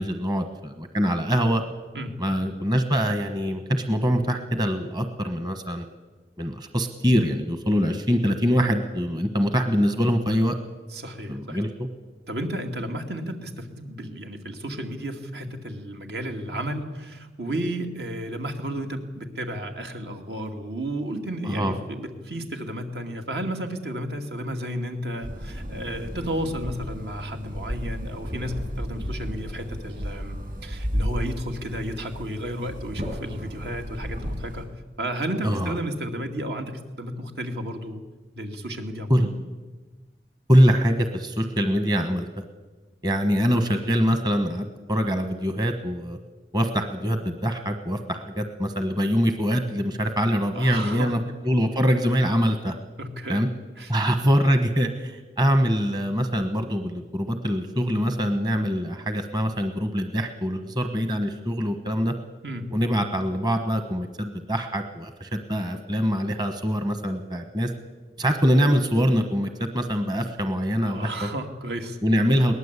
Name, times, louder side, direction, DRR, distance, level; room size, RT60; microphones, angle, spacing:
voice 1, 0.0-1.6 2.2-5.8 6.4-10.6 11.3-11.9 21.4-21.8 35.4-35.8 39.1-39.3 40.5-42.4 43.0-46.2 46.5-51.2 51.4-52.7 53.3-53.5 53.9-62.1 62.7-67.7 68.2-71.3 72.0-72.5, equal, 25° right, 7 dB, 1.2 m, -24 dB
voice 2, 10.9-11.6 12.3-34.6 35.0-38.0 38.4-39.3 50.5-51.1 53.0-53.4 53.8-53.9 62.4-62.7 70.8-72.0, right 1 dB, 70° right, 4 dB, 2.5 m, -32 dB
sound 1, 25.2-34.7, equal, 50° right, 6.9 m, -33 dB
22.0 x 19.0 x 8.3 m, 1.3 s
head